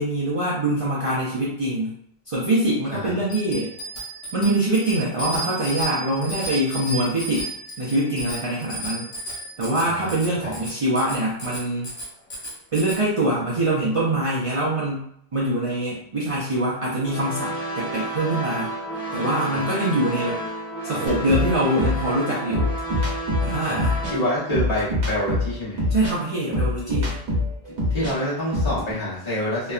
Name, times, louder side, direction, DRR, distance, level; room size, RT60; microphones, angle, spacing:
voice 1, 0.0-1.9 2.3-3.7 4.3-7.5 7.8-9.1 9.6-11.9 12.7-15.1 15.3-18.7 19.1-20.4 20.8-22.7 23.4-24.0 25.9-27.2, right 1 dB, 45° right, -7 dB, 0.5 m, -24 dB
Bicycle bell, 3.3-13.0, right 1 dB, 85° left, 1.3 m, -34 dB
sound 1, 17.0-24.4, right 1 dB, 5° left, 0.8 m, -31 dB
sound 2, 21.1-28.1 28.4-28.9, left 1 dB, 70° right, 1.1 m, -25 dB
voice 2, 24.1-25.8 27.9-29.7, left 1 dB, 40° left, -9 dB, 1.1 m, -27 dB
2.8 x 2.2 x 2.3 m, 0.72 s
omnidirectional pair, 1.0 m